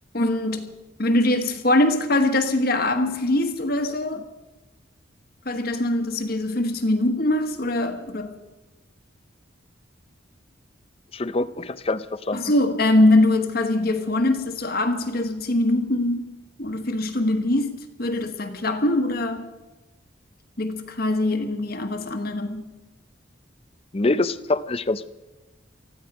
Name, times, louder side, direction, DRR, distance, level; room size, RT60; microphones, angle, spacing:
voice 1, 0.1-0.7 1.0-4.2 5.4-8.4 12.3-16.3 16.6-19.5 20.6-22.7, left 1 dB, 50° left, 6 dB, 1.4 m, -22 dB
voice 2, 11.1-12.4 23.9-25.1, left 2 dB, 30° left, 14 dB, 0.5 m, -25 dB
19.5 x 14.5 x 4.9 m, 1.1 s
head